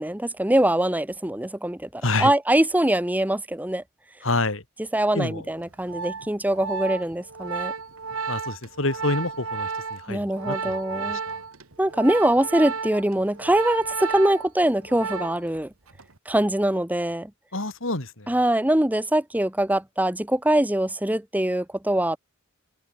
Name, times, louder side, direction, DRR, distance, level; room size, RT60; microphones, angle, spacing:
voice 1, 0.0-3.8 4.9-7.7 10.1-11.2 11.8-15.7 16.3-17.3 18.3-22.2, right 1 dB, 10° right, 1.1 m, -23 dB
voice 2, 4.2-4.6 5.1-5.4 8.3-11.4 17.5-18.3, left 2 dB, 65° left, 3.3 m, -28 dB
Organ, 5.6-15.6 15.9-16.2, right 5 dB, 90° right, 2.1 m, -33 dB
head